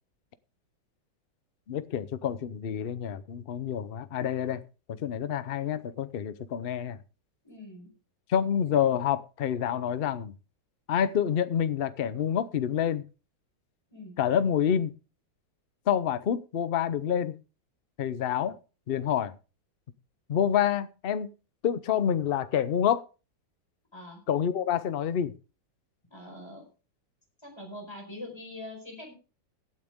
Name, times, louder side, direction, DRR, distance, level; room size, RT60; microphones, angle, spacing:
voice 1, 1.7-4.6 4.9-7.0 8.3-10.3 10.9-13.0 14.2-14.9 15.9-17.3 18.0-18.6 18.9-19.4 20.3-21.3 21.6-23.0 24.3-25.3, left 9 dB, 65° left, 0.5 m, -27 dB
voice 2, 7.4-7.9 13.9-14.2 23.9-24.2 26.1-26.7 27.4-29.1, left 1 dB, 15° left, 4.5 m, -43 dB
16.0 x 9.1 x 3.6 m
omnidirectional pair, 2.0 m